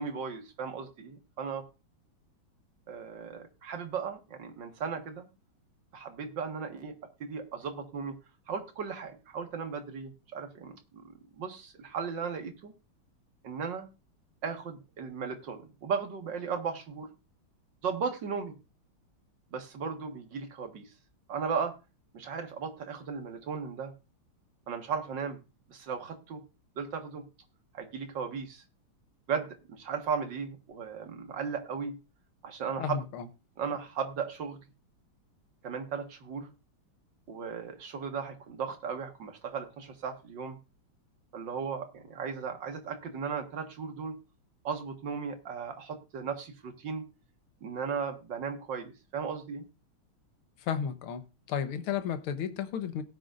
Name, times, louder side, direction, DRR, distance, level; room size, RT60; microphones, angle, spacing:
voice 1, 0.0-1.7 2.9-5.3 5.9-7.0 7.2-8.1 8.5-12.7 13.4-13.9 14.4-17.1 17.8-18.5 19.5-20.9 21.3-21.8 22.1-23.9 24.7-25.4 25.7-26.4 26.8-27.3 27.7-28.6 29.3-32.0 32.4-33.1 33.6-34.6 35.6-36.5 37.3-40.6 41.3-44.2 44.6-47.0 47.6-49.7, right 6 dB, 55° right, 2.2 m, -36 dB
voice 2, 32.8-33.3 50.6-51.2 51.5-53.0, left 8 dB, 75° left, 1.9 m, -33 dB
17.5 x 9.2 x 2.5 m
omnidirectional pair, 2.4 m